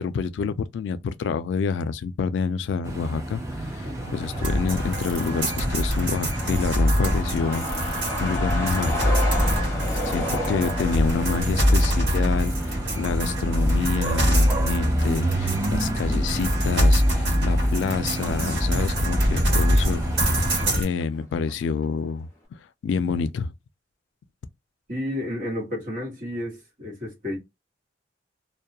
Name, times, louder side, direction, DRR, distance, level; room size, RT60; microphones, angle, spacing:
voice 1, 0.0-3.4 3.7-9.0 10.1-12.5 13.0-20.5 20.8-23.5, left 5 dB, 90° left, 0.3 m, -28 dB
sound 1, 2.8-20.8, right 1 dB, 15° right, 0.5 m, -31 dB
Truck, 4.0-19.2 19.5-19.6 19.8-20.7 21.0-21.1 21.5-21.8, left 1 dB, 15° left, 0.9 m, -35 dB
sound 2, 4.4-20.8, equal, 75° right, 1.1 m, -24 dB
voice 2, 24.9-27.4, left 1 dB, 45° right, 1.2 m, -31 dB
2.3 x 2.1 x 2.7 m
head